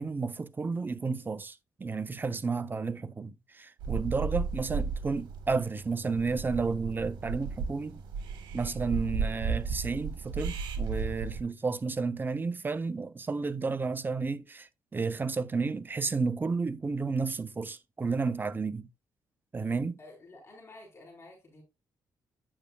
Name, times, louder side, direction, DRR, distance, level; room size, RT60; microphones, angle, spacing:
voice 1, 0.0-8.0 8.5-18.9 19.5-20.0, right 4 dB, 25° right, 0.6 m, -32 dB
sound 1, 3.8-11.4, right 5 dB, 85° right, 1.5 m, -34 dB
voice 2, 20.0-21.6, left 2 dB, 35° left, 4.3 m, -51 dB
8.8 x 6.5 x 2.3 m
cardioid pair, 85°, 8 cm